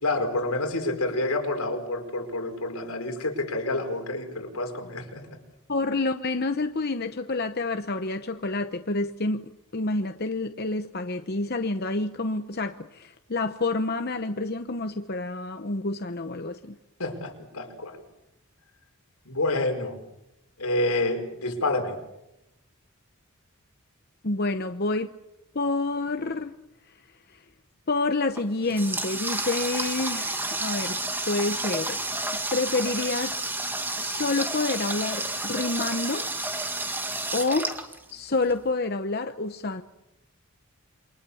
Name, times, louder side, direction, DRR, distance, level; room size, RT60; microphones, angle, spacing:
voice 1, 0.0-5.3 17.0-18.0 19.2-20.0 20.6-21.9, left 2 dB, 80° left, 4 dB, 5.0 m, -28 dB
voice 2, 5.7-16.8 24.2-25.1 25.5-26.5 27.9-31.0 31.3-32.0 32.5-33.5 34.0-36.3 37.3-37.7 38.1-39.8, left 3 dB, 45° left, 8 dB, 0.9 m, -28 dB
Water tap faucet, 28.3-38.5, right 2 dB, 10° right, 2.0 m, -30 dB
28.5 x 24.0 x 7.1 m, 0.89 s
head